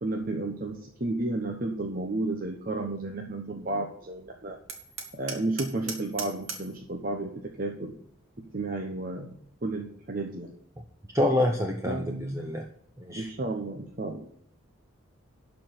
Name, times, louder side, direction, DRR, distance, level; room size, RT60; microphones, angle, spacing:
voice 1, 0.0-4.6 5.1-7.3 7.6-7.9 8.5-9.3 9.6-10.5 11.9-12.5 13.1-14.3, right 2 dB, 40° right, 1 dB, 1.0 m, -32 dB
Hammer, 4.7-6.8, right 5 dB, 70° right, 1.9 m, -39 dB
voice 2, 11.1-12.6 13.0-13.3, left 1 dB, 15° right, 2 dB, 0.8 m, -27 dB
12.0 x 4.7 x 7.8 m, 0.67 s
head